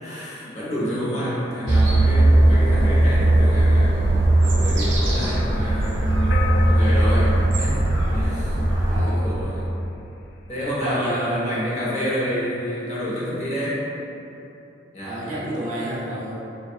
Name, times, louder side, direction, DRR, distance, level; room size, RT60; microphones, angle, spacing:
voice 1, 0.0-8.6 8.9-9.7 10.5-13.9 14.9-15.2 15.5-15.7, equal, 35° left, -7 dB, 0.9 m, -28 dB
sound 1, 1.7-9.0, right 1 dB, 80° right, 0.9 m, -18 dB
sound 2, 6.3-8.9, left 4 dB, 60° left, 0.3 m, -33 dB
voice 2, 8.9-9.4 10.8-11.4 15.0-16.4, right 1 dB, 40° right, -6 dB, 0.6 m, -29 dB
6.7 x 2.5 x 2.3 m, 2.9 s
head